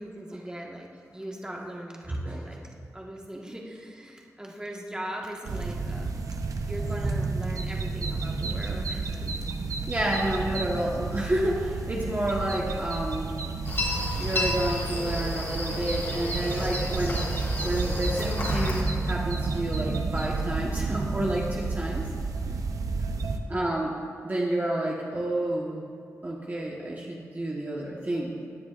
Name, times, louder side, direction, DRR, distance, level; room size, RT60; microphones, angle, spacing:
voice 1, 0.0-2.6 2.9-6.1 6.6-9.3, right 1 dB, 15° right, -1 dB, 1.5 m, -39 dB
voice 2, 2.1-2.8 7.0-7.2 9.9-13.3 14.2-22.1 22.5-22.6 23.5-23.9 24.2-25.9 26.2-28.4, right 1 dB, 30° right, -4 dB, 1.2 m, -30 dB
sound 1, 5.4-23.4, right 3 dB, 70° right, 0.8 m, -31 dB
sound 2, 13.6-18.8, left 2 dB, 40° left, 3.0 m, -32 dB
17.5 x 9.5 x 2.5 m, 2.4 s
cardioid pair, 75°, 6 cm